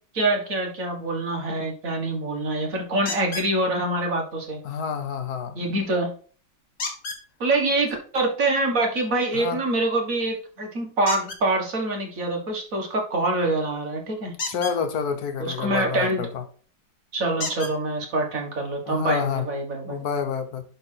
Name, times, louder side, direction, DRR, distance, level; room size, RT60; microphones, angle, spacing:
voice 1, 0.1-4.6 5.6-6.1 7.4-14.3 15.4-16.2 17.1-20.0, right 2 dB, 50° right, 2 dB, 1.9 m, -25 dB
sound 1, 3.1-3.5 6.8-7.2 11.0-11.4 14.3-14.8 16.4-16.5 17.4-17.7 18.7-18.8 19.3-19.4, left 4 dB, 40° left, 1.4 m, -31 dB
voice 2, 4.6-5.6 9.3-9.6 14.5-16.4 18.9-19.5 19.8-20.6, left 6 dB, 60° left, 8 dB, 1.4 m, -28 dB
11.0 x 3.9 x 4.4 m, 0.43 s
omnidirectional pair, 2.0 m